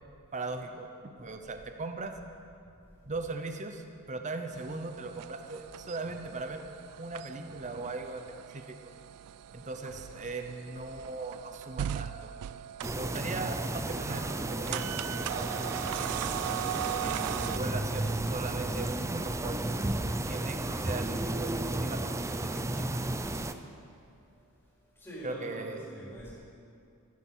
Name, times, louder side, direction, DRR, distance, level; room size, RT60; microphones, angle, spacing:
voice 1, 0.3-2.1 3.0-6.6 7.0-8.9 9.5-12.3 12.9-15.5 16.7-19.7 20.3-23.0 25.2-25.8, right 3 dB, 35° right, 6 dB, 0.8 m, -39 dB
voice 2, 2.9-3.2 9.3-9.4 23.7-23.9 24.2-24.4 24.9-26.3, right 1 dB, 10° left, -8 dB, 4.4 m, -45 dB
sound 1, 4.5-17.6, right 10 dB, 85° right, 0.3 m, -39 dB
sound 2, 12.8-23.5, right 1 dB, 15° right, 0.5 m, -33 dB
14.0 x 14.0 x 5.5 m, 2.5 s
head